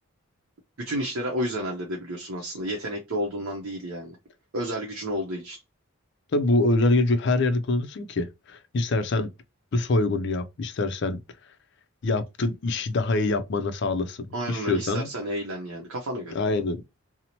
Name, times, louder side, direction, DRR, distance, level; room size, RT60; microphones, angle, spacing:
voice 1, 0.8-4.2 4.5-5.6 14.3-16.4, equal, 65° right, 0.6 m, -31 dB
voice 2, 6.3-9.3 9.7-11.2 12.0-15.1 16.3-16.8, left 2 dB, 50° left, 0.4 m, -25 dB
2.7 x 2.0 x 2.9 m
head